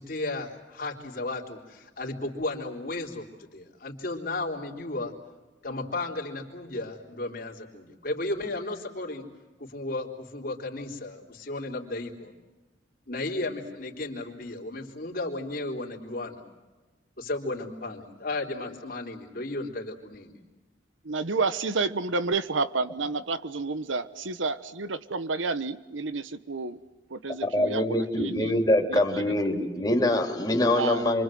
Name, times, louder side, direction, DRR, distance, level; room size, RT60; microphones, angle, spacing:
voice 1, 0.0-5.1 5.6-9.3 9.6-12.3 13.1-16.4 17.2-20.4, left 2 dB, 50° left, 1 dB, 3.7 m, -34 dB
voice 2, 21.0-26.8 27.1-28.6 28.9-29.3 30.7-31.1, right 3 dB, 90° right, 13 dB, 1.2 m, -30 dB
voice 3, 27.4-31.2, left 1 dB, 20° left, 2 dB, 3.4 m, -24 dB
28.0 x 25.0 x 7.7 m, 1.2 s
head